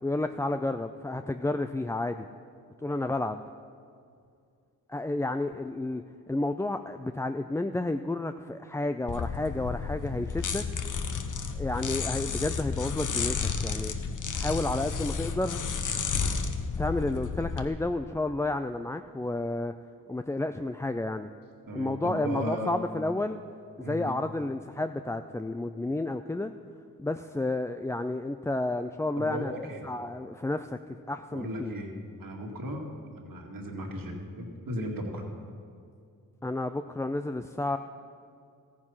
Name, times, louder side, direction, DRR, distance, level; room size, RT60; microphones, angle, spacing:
voice 1, 0.0-2.3 2.8-3.4 4.9-6.0 6.3-10.6 11.6-13.9 14.3-15.6 16.8-19.7 20.1-21.3 21.7-23.4 23.8-26.5 27.0-29.5 29.8-30.8 31.1-31.7 36.4-37.8, left 2 dB, 10° left, 8 dB, 0.3 m, -31 dB
sound 1, 9.1-17.7, left 5 dB, 55° left, 1.0 m, -32 dB
voice 2, 21.7-22.8 23.8-24.1 29.2-29.8 31.3-31.9 32.2-32.9 33.2-35.2, equal, 65° right, 1 dB, 2.2 m, -36 dB
14.0 x 9.5 x 5.7 m, 2.4 s
cardioid pair, 60°, 37 cm